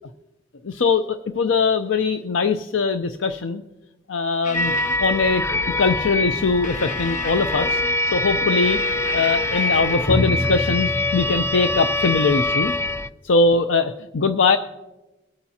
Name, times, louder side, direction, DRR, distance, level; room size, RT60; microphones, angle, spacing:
voice 1, 0.6-3.6 4.1-4.7 5.0-5.4 5.8-7.8 8.1-8.8 9.1-12.8 13.2-14.6, left 4 dB, 75° left, 8 dB, 0.6 m, -21 dB
sound 1, 4.4-5.1 6.6-8.1 8.6-10.2, left 4 dB, 40° left, 0.7 m, -35 dB
sound 2, 4.5-13.1, left 2 dB, 15° left, 0.3 m, -23 dB
23.0 x 8.8 x 2.8 m, 1.0 s
head